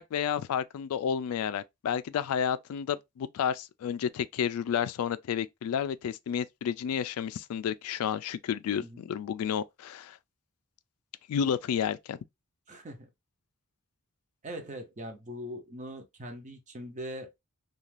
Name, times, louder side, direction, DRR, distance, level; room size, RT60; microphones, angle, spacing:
voice 1, 0.0-10.2 11.3-12.2, left 8 dB, 70° left, 0.3 m, -31 dB
voice 2, 12.7-13.1 14.4-17.4, equal, 35° right, 0.6 m, -41 dB
2.5 x 2.3 x 3.1 m
head